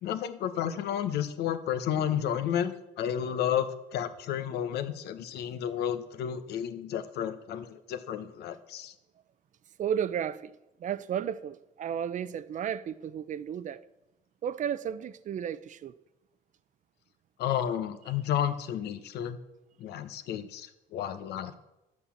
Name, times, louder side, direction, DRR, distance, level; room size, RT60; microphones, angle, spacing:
voice 1, 0.0-8.9 17.4-19.4 19.8-21.5, left 9 dB, 75° left, 1.1 m, -32 dB
voice 2, 9.8-13.8 14.4-15.9, right 9 dB, 45° right, 0.6 m, -33 dB
11.5 x 8.3 x 7.2 m
cardioid pair, 110°, 17 cm